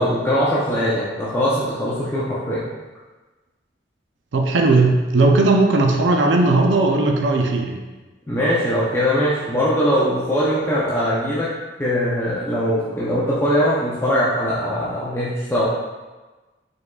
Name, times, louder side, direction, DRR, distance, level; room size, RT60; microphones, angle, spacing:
voice 1, 0.0-2.6 8.3-11.5 11.8-15.6, equal, 15° left, -8 dB, 0.6 m, -21 dB
voice 2, 4.3-7.8, right 2 dB, 90° right, 3 dB, 0.5 m, -17 dB
5.0 x 3.7 x 2.3 m, 1.2 s
head